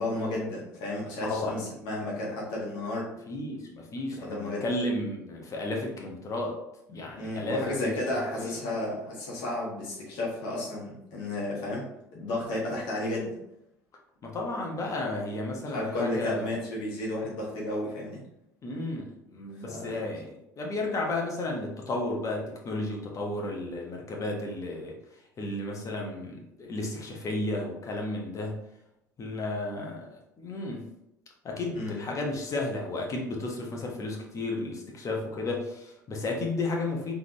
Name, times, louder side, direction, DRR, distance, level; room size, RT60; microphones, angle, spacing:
voice 1, 0.0-3.1 4.2-4.6 7.2-11.8 12.1-13.4 15.7-18.2 19.7-20.0 31.7-32.0, left 1 dB, 55° left, -5 dB, 1.5 m, -32 dB
voice 2, 1.2-1.7 3.3-6.6 6.9-7.9 8.4-8.5 14.2-16.6 18.6-24.9 25.4-28.6 29.2-30.8 31.4-37.1, left 2 dB, 35° left, 0 dB, 1.1 m, -33 dB
3.8 x 3.4 x 3.0 m, 0.84 s
figure-of-eight pair, 60°, 9 cm